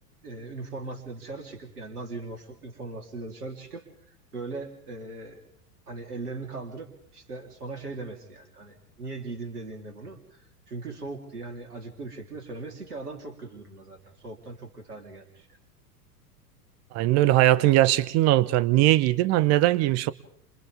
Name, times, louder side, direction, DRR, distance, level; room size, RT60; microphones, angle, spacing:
voice 1, 0.2-3.8 4.3-5.4 5.9-15.5, right 3 dB, 75° right, 3.9 m, -39 dB
voice 2, 16.9-20.1, right 15 dB, 35° right, 0.9 m, -20 dB
29.5 x 27.5 x 3.7 m
figure-of-eight pair, 90°, 46 cm